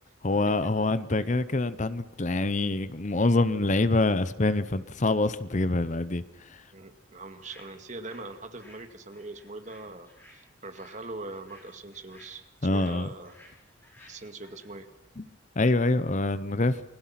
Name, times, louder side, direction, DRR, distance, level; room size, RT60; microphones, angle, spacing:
voice 1, 0.2-6.2 6.5-6.6 12.6-13.1 15.2-15.3 15.6-16.8, left 2 dB, 40° left, 14 dB, 0.9 m, -25 dB
voice 2, 6.7-12.4 12.7-13.3 14.1-14.9, right 2 dB, 40° right, 7 dB, 2.1 m, -42 dB
sound 1, 7.4-8.3 8.6-14.7, left 1 dB, 10° left, 7.5 m, -56 dB
29.5 x 21.5 x 6.0 m, 0.98 s
head